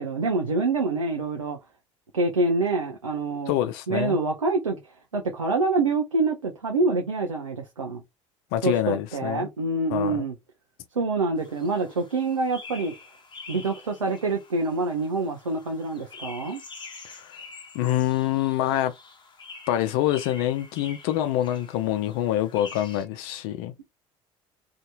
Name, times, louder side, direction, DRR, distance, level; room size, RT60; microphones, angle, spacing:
voice 1, 0.0-1.6 2.1-3.5 3.9-4.8 5.1-8.0 8.6-10.3 10.9-12.9 13.5-16.6, right 3 dB, 90° right, 0.5 m, -26 dB
voice 2, 3.5-4.2 8.5-9.5 9.9-10.3 17.0-17.4 17.7-18.9 19.7-23.7, left 12 dB, 60° left, 0.5 m, -26 dB
sound 1, 11.4-23.0, left 4 dB, 30° left, 1.0 m, -46 dB
2.7 x 2.5 x 2.2 m
figure-of-eight pair, 60°, 16 cm